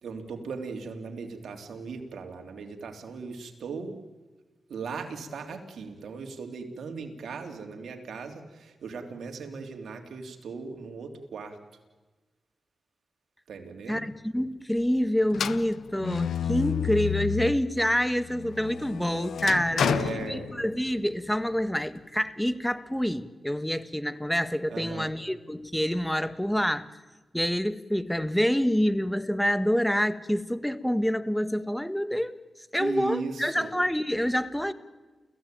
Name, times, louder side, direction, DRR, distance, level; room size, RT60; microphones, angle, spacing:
voice 1, 0.0-4.0 4.7-11.6 13.5-14.1 19.8-20.5 24.7-25.2 32.8-33.7, right 5 dB, 85° right, 4 dB, 3.2 m, -38 dB
voice 2, 13.9-19.9 20.3-26.9 27.3-32.3 32.7-34.7, equal, 5° left, 13 dB, 1.6 m, -27 dB
sound 1, 15.3-17.7 18.2-21.0, left 8 dB, 90° left, 0.7 m, -30 dB
29.0 x 16.0 x 9.2 m, 1.2 s
cardioid pair, 55°, 0 cm